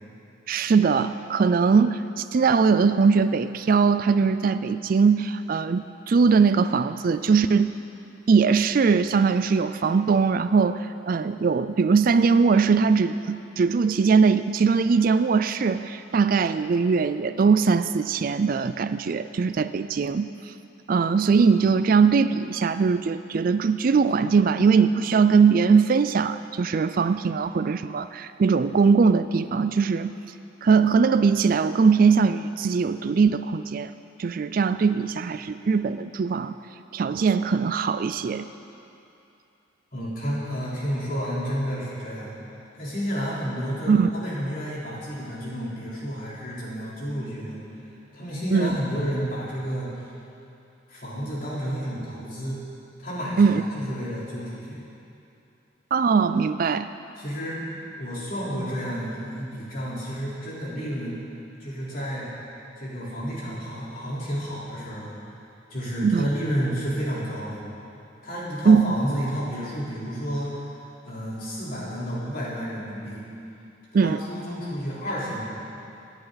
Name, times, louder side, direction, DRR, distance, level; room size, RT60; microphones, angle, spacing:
voice 1, 0.5-7.7 8.3-20.5 20.9-30.1 30.6-33.9 34.2-36.6 36.9-38.5 43.9-44.1 48.5-48.7 53.4-53.6 55.9-56.9 66.0-66.3 68.7-68.9 73.9-74.2, right 5 dB, 45° right, 12 dB, 0.3 m, -21 dB
voice 2, 39.9-42.4 42.7-47.6 48.1-49.9 50.9-52.6 53.0-54.8 57.2-57.7 58.0-61.2 61.6-62.3 62.8-65.1 65.7-67.6 68.2-70.7 71.1-73.2 73.9-75.4, equal, 50° left, -7 dB, 3.8 m, -31 dB
24.0 x 10.5 x 4.0 m, 2.7 s
head